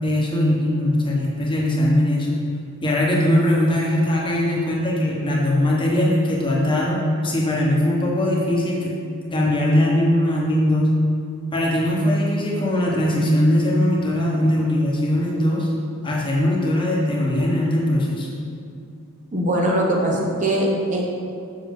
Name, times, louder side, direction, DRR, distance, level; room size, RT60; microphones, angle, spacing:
voice 1, 0.0-2.4 2.8-9.0 9.3-11.0 11.5-15.7 16.0-18.3, left 1 dB, 25° left, -4 dB, 1.2 m, -20 dB
voice 2, 19.3-21.0, right 1 dB, 35° right, -2 dB, 0.8 m, -21 dB
7.4 x 6.3 x 3.7 m, 2.4 s
head